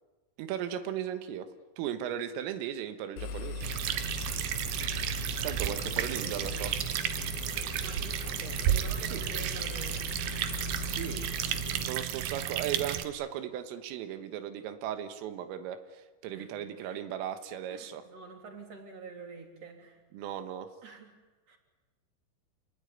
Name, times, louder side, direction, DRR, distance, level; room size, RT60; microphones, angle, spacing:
voice 1, 0.4-1.5 1.8-3.6 5.4-6.7 9.0-9.2 10.9-11.2 11.9-18.0 20.1-20.7, right 10 dB, 85° right, 9 dB, 3.9 m, -37 dB
Engine, 3.2-11.9, left 3 dB, 70° left, 2.5 m, -39 dB
sound 1, 3.6-13.0, right 11 dB, 70° right, 3.0 m, -33 dB
voice 2, 5.4-6.7 7.8-10.2 16.3-16.5 16.8-17.0 17.7-20.0 20.8-21.1 21.5-21.6, right 4 dB, 35° right, 3 dB, 3.9 m, -47 dB
28.5 x 19.0 x 10.0 m, 1.2 s
omnidirectional pair, 5.8 m